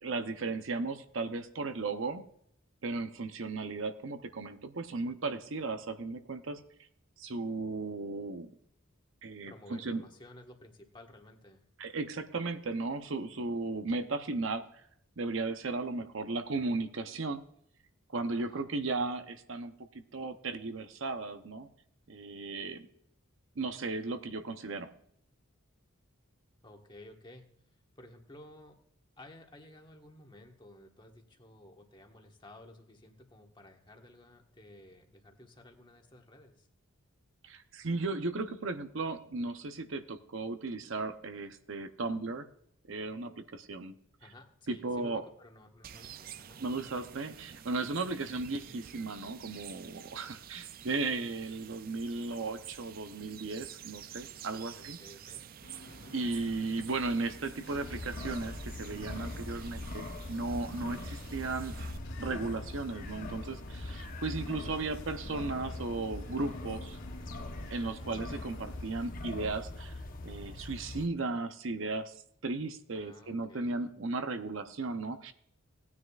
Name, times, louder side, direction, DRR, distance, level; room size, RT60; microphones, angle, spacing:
voice 1, 0.0-2.2 2.8-6.6 7.2-8.5 9.2-10.0 11.8-14.6 15.2-17.4 18.1-21.7 22.1-22.8 23.6-24.9 37.4-42.5 42.9-43.9 44.7-45.2 46.6-55.0 56.1-61.7 62.2-67.0 67.7-75.3, right 3 dB, 60° right, 8 dB, 0.7 m, -36 dB
voice 2, 9.5-11.7 18.3-18.7 26.6-27.5 28.0-28.8 29.2-36.7 44.2-46.6 54.7-55.4 55.9-56.2 72.9-74.0, left 1 dB, 20° left, 3 dB, 1.3 m, -54 dB
sound 1, 45.8-62.0, right 9 dB, 40° right, 0.4 m, -50 dB
sound 2, 55.6-69.1, equal, 60° left, 2.7 m, -52 dB
sound 3, 57.7-71.1, left 2 dB, 40° left, 1.0 m, -42 dB
17.5 x 9.7 x 2.4 m, 0.70 s
head